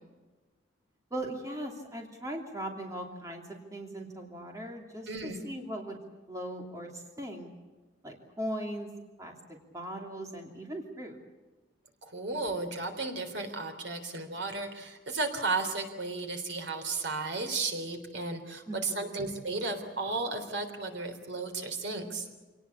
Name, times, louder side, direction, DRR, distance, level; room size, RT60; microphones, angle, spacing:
voice 1, 1.1-6.0 6.3-7.5 8.0-8.9 9.2-11.2 18.7-19.2, right 1 dB, 15° right, 1 dB, 2.8 m, -39 dB
voice 2, 5.1-5.4 12.0-22.3, right 3 dB, 65° right, 6 dB, 3.6 m, -34 dB
27.0 x 19.0 x 8.5 m, 1.3 s
head